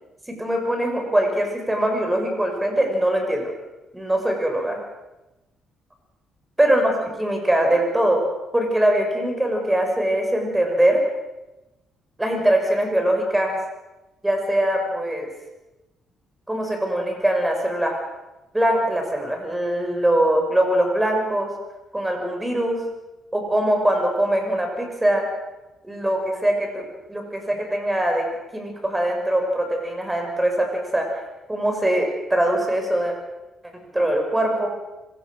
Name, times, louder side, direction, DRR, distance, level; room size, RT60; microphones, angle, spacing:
voice 1, 0.4-3.5 3.9-4.8 6.6-8.2 8.5-11.0 12.2-13.6 14.2-15.3 16.5-18.0 18.5-21.5 21.9-22.8 23.3-25.2 25.8-26.8 27.1-28.2 28.5-30.7 30.9-31.1 31.5-33.1 33.9-34.7, right 1 dB, 10° right, 3 dB, 6.5 m, -22 dB
25.0 x 17.5 x 6.6 m, 1.0 s
cardioid pair, 90°, 0 cm